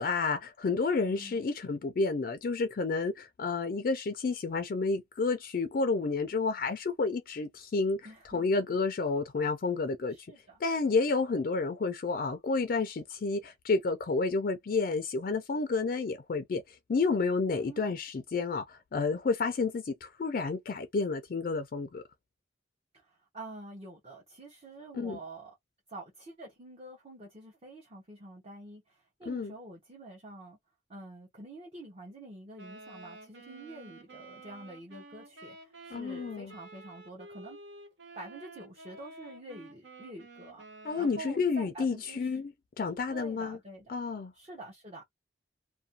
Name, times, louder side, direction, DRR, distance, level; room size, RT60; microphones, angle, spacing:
voice 1, 0.0-8.0 8.3-10.3 10.6-22.0 24.9-25.2 29.3-29.5 35.9-36.5 40.8-43.6 43.9-44.3, left 4 dB, 50° left, 0.4 m, -30 dB
voice 2, 1.1-1.4 8.0-8.4 10.1-10.6 17.5-17.9 22.9-25.6 25.9-30.6 30.9-37.6 38.1-40.6 41.0-42.3 43.1-43.9 44.3-45.1, right 2 dB, 35° right, 0.8 m, -47 dB
Wind instrument woodwind instrument, 32.6-41.6, right 2 dB, 75° right, 0.8 m, -50 dB
2.5 x 2.2 x 2.7 m
head